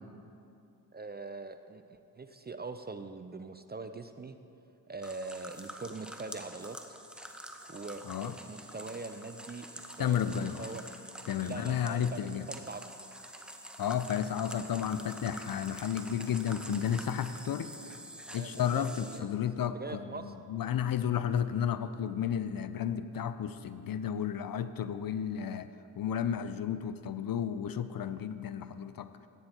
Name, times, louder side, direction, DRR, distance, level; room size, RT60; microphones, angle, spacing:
voice 1, 0.9-4.4 4.9-7.0 7.7-10.8 11.4-12.9 18.4-20.3, right 3 dB, 20° right, 9 dB, 0.5 m, -43 dB
sound 1, 5.0-19.2, equal, ahead, 0.9 m, -47 dB
voice 2, 10.0-10.7 11.3-12.5 13.8-18.0 18.3-25.7 25.9-29.1, left 9 dB, 50° left, 13 dB, 0.5 m, -32 dB
14.5 x 9.4 x 2.9 m, 2.7 s
supercardioid pair, 40°, 47 cm